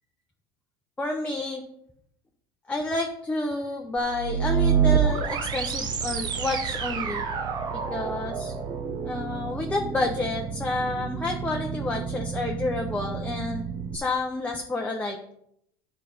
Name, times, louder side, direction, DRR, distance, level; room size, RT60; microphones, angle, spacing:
voice 1, 1.0-1.6 2.7-7.2 7.7-8.5 9.0-15.3, left 2 dB, 10° left, 0 dB, 0.9 m, -30 dB
sound 1, 4.0-14.0, right 7 dB, 35° right, 1.0 m, -28 dB
11.0 x 4.2 x 5.1 m, 0.73 s
supercardioid pair, 130°, 12 cm